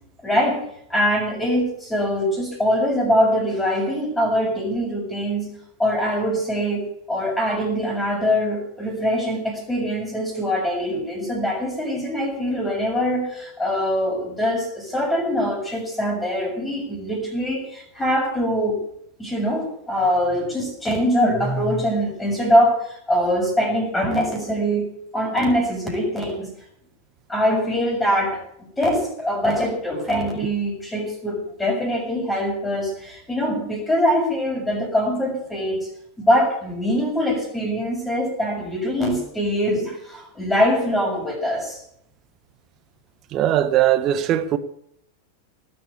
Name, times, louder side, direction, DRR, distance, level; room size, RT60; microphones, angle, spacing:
voice 1, 0.2-0.6 0.9-18.8 19.2-26.5 27.3-35.9 36.2-41.8, equal, 10° left, 6.6 m, -23 dB
voice 2, 43.3-44.6, right 12 dB, 35° right, 1.4 m, -19 dB
19.5 x 8.4 x 8.3 m
figure-of-eight pair, 90°, 0 cm